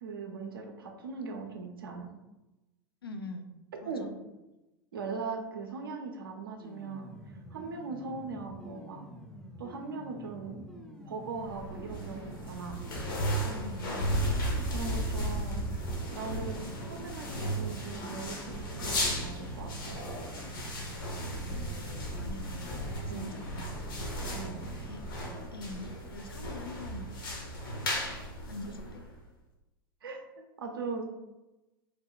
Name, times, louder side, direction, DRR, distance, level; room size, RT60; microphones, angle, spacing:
voice 1, 0.0-2.1 3.8-4.1 4.9-7.1 7.5-9.0 9.6-10.7 11.1-12.8 14.5-15.7 16.1-20.0 23.1-23.4 24.3-24.6 30.0-31.0, right 4 dB, 80° right, 3 dB, 0.6 m, -40 dB
voice 2, 3.0-3.5 3.8-4.2 13.4-14.2 21.4-24.2 24.6-25.0 25.5-27.1 27.8-28.2 28.4-29.0, left 2 dB, 90° left, 5 dB, 0.4 m, -45 dB
sound 1, 6.6-25.5, equal, 5° left, 0.5 m, -48 dB
sound 2, 11.4-29.2, equal, 70° left, 1.1 m, -35 dB
3.3 x 2.2 x 3.7 m, 1.0 s
hypercardioid pair, 95°, 12 cm